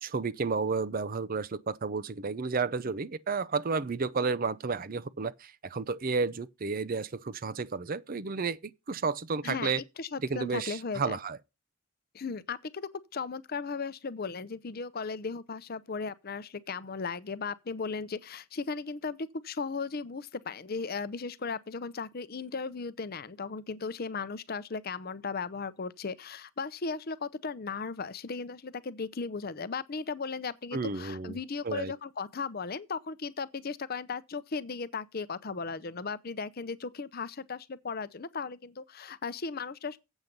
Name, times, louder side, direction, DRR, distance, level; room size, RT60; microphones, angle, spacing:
voice 1, 0.0-9.8 10.2-11.4 30.7-31.4 31.6-31.9, right 4 dB, 40° right, 0.5 m, -32 dB
voice 2, 9.4-11.2 12.1-40.0, left 4 dB, 45° left, 0.6 m, -36 dB
8.1 x 7.3 x 5.3 m
head